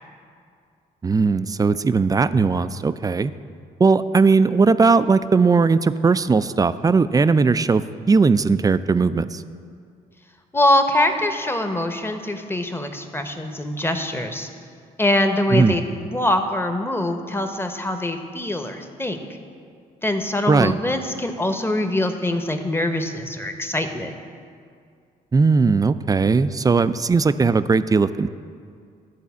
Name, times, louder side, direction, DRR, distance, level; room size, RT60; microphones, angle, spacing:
voice 1, 1.0-3.3 3.8-9.4 15.5-15.8 20.5-20.7 25.3-28.3, right 4 dB, 20° right, 13 dB, 0.3 m, -18 dB
voice 2, 10.5-14.5 15.0-19.2 20.0-24.1, left 1 dB, 10° left, 6 dB, 1.0 m, -23 dB
11.0 x 4.1 x 7.0 m, 2.3 s
hypercardioid pair, 50°, 19 cm